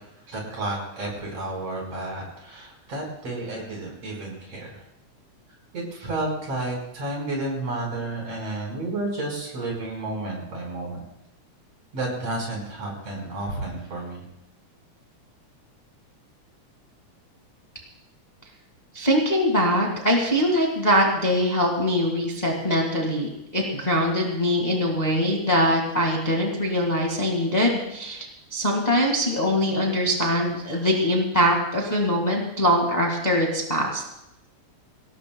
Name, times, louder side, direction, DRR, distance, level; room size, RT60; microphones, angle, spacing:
voice 1, 0.3-4.8 5.7-11.0 11.9-14.2, right 2 dB, 60° right, -1 dB, 6.0 m, -31 dB
voice 2, 18.9-34.0, equal, 15° left, 0 dB, 1.7 m, -23 dB
25.0 x 18.0 x 2.3 m, 0.84 s
omnidirectional pair, 3.3 m